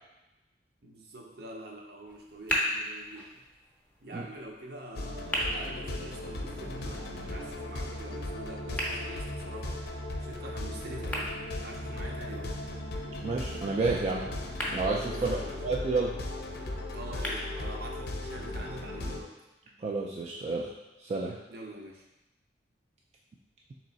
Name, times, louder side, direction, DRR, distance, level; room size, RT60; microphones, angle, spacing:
voice 1, 0.8-3.4 4.0-9.8 10.2-11.3 11.6-12.5 15.1-15.6 16.9-19.4 21.5-22.0, right 1 dB, 60° right, 0 dB, 0.7 m, -45 dB
sound 1, 2.1-18.1, equal, 10° left, 0.7 m, -40 dB
sound 2, 5.0-19.2, left 1 dB, 60° left, 0.5 m, -37 dB
voice 2, 13.2-14.2 14.7-15.4 15.6-16.1 19.8-20.7 21.0-21.4, right 3 dB, 35° right, -2 dB, 0.3 m, -30 dB
3.6 x 3.1 x 4.0 m, 1.0 s
head